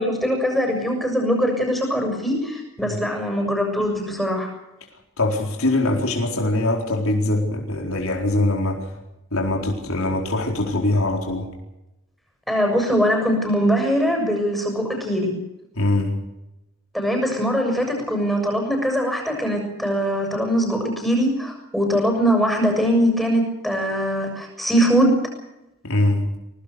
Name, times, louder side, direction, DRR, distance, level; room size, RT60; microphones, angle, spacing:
voice 1, 0.0-4.5 12.5-15.4 16.9-25.2, equal, ahead, 2 dB, 6.8 m, -22 dB
voice 2, 5.2-8.8 9.3-11.5 15.8-16.1 25.8-26.3, left 2 dB, 80° left, 1 dB, 4.4 m, -22 dB
23.5 x 19.0 x 6.7 m, 0.92 s
head